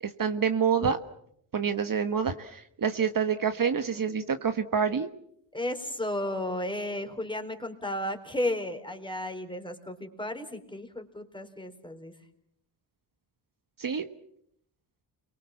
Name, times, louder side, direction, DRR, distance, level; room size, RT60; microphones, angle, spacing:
voice 1, 0.0-1.0 1.5-5.1 13.8-14.1, right 6 dB, 45° right, 8 dB, 1.5 m, -27 dB
voice 2, 5.5-12.1, left 1 dB, 10° left, 6 dB, 4.2 m, -33 dB
30.0 x 23.5 x 7.3 m, 0.71 s
cardioid pair, 80°, 45 cm